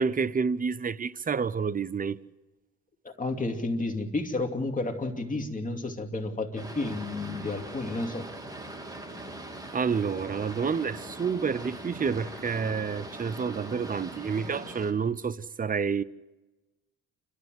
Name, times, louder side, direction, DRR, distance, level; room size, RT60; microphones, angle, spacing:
voice 1, 0.0-2.2 9.7-16.0, right 6 dB, 30° right, 0.7 m, -29 dB
voice 2, 3.2-8.3, left 2 dB, 25° left, 2.6 m, -31 dB
Boat Water vehicle, 6.6-14.9, right 1 dB, 10° right, 2.9 m, -41 dB
29.0 x 13.0 x 7.8 m
cardioid pair, 90°, 30 cm